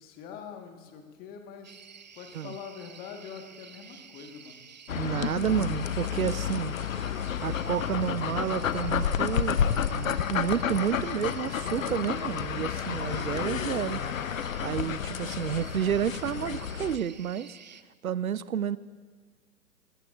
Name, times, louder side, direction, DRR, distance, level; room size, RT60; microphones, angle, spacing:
voice 1, 0.0-1.8 2.1-4.7 5.5-5.8, left 7 dB, 20° left, 4 dB, 1.5 m, -44 dB
sound 1, 1.6-17.8, right 6 dB, 30° right, 0.4 m, -51 dB
sound 2, 4.9-17.0, left 8 dB, 60° left, 0.8 m, -30 dB
voice 2, 5.0-6.7 7.4-9.6 9.9-14.0 14.6-17.6 18.0-18.8, right 9 dB, 65° right, 18 dB, 0.7 m, -30 dB
Wind, 11.5-16.4, right 1 dB, ahead, 4.0 m, -54 dB
20.5 x 20.5 x 2.5 m, 1.5 s
figure-of-eight pair, 120°, 45 cm